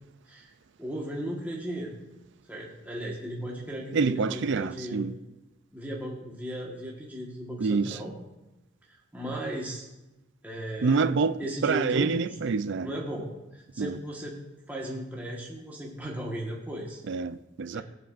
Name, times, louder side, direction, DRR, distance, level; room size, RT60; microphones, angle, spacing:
voice 1, 0.8-2.0 2.5-5.1 5.7-8.2 9.1-9.9 10.4-11.1 11.4-12.4 12.8-13.3 13.5-14.3 14.7-17.0 17.7-17.8, right 1 dB, 10° right, 1.4 m, -36 dB
voice 2, 3.9-5.1 7.6-8.0 10.8-12.9 13.8-14.0 17.1-17.8, right 4 dB, 60° right, 0.4 m, -27 dB
20.5 x 7.7 x 2.5 m
head